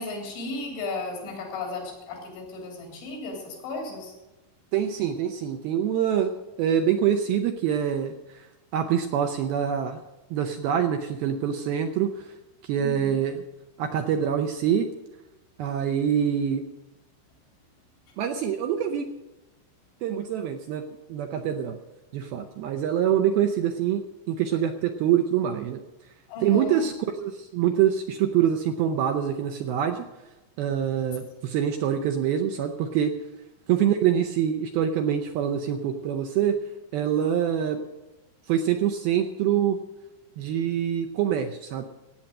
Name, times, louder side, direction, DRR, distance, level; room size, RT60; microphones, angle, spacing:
voice 1, 0.0-4.1 12.8-13.2 26.3-26.9, left 3 dB, 90° left, 0 dB, 5.6 m, -35 dB
voice 2, 4.7-8.5 8.7-10.0 10.3-12.3 12.6-13.4 13.8-14.9 15.6-16.6 18.2-19.1 20.0-21.8 22.1-25.8 26.4-30.0 30.6-33.1 33.7-36.6 36.9-37.8 38.5-39.8 40.4-41.8, right 9 dB, 80° right, 6 dB, 2.2 m, -25 dB
16.5 x 8.8 x 6.5 m, 1.1 s
omnidirectional pair, 5.2 m